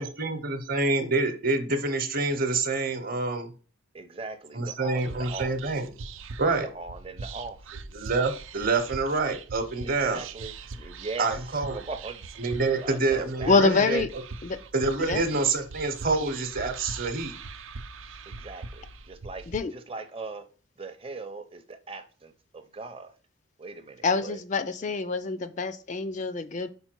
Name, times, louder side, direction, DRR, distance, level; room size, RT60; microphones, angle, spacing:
voice 1, 0.0-3.5 4.5-5.9 6.4-6.7 7.9-10.2 11.2-11.8 12.4-14.0 14.7-17.3, right 3 dB, 45° right, 0.9 m, -27 dB
voice 2, 3.9-5.5 6.6-7.8 9.8-11.4 11.7-12.3 12.7-13.8 18.3-19.5 19.7-20.5 20.8-23.1 23.6-24.4, right 3 dB, 25° right, 0.6 m, -39 dB
Whispering, 4.9-19.6, right 4 dB, 70° right, 0.5 m, -41 dB
voice 3, 13.5-14.1 14.4-14.6 15.0-15.2 19.5-19.7 24.0-26.7, left 4 dB, 35° left, 0.4 m, -25 dB
5.5 x 4.5 x 4.5 m
head